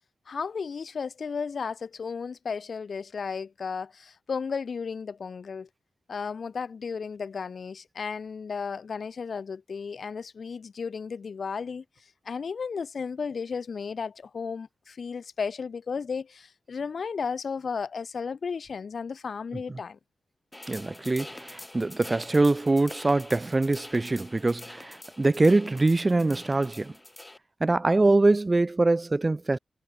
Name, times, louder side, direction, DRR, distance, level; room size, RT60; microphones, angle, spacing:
voice 1, 0.3-5.7 6.1-11.8 12.2-20.0, left 5 dB, 70° left, 0.8 m, -34 dB
sound 1, 20.5-27.4, left 1 dB, 20° left, 1.6 m, -45 dB
voice 2, 20.7-26.9 27.6-29.6, right 2 dB, 35° right, 0.6 m, -23 dB
cardioid pair, 45°, 0 cm